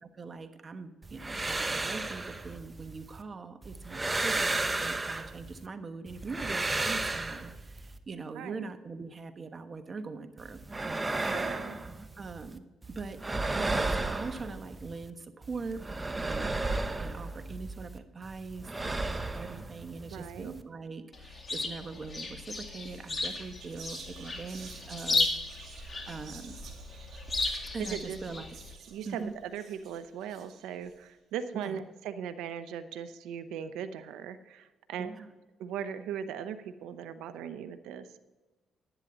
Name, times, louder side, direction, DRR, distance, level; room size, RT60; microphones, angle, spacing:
voice 1, 0.0-11.2 12.2-13.2 13.5-15.8 16.2-25.3 25.7-26.6 27.7-28.6 29.1-29.3 31.5-31.8 34.9-35.3, right 4 dB, 40° right, 9 dB, 1.1 m, -42 dB
sound 1, 1.0-3.2 3.6-5.7 6.1-8.0 10.4-12.6 12.8-15.1 15.4-18.0 18.2-20.6, right 2 dB, 20° right, 0.8 m, -34 dB
voice 2, 8.3-8.7 11.3-11.8 20.1-20.6 27.8-28.2 28.9-35.1 35.6-38.1, right 8 dB, 90° right, 11 dB, 0.7 m, -39 dB
Chirp tweet, 21.1-28.7, left 3 dB, 30° left, 2.2 m, -35 dB
Whispering, 22.5-22.6 22.8-30.9, right 5 dB, 65° right, 2.1 m, -49 dB
11.0 x 10.5 x 3.9 m, 1.2 s
cardioid pair, 80°, 0 cm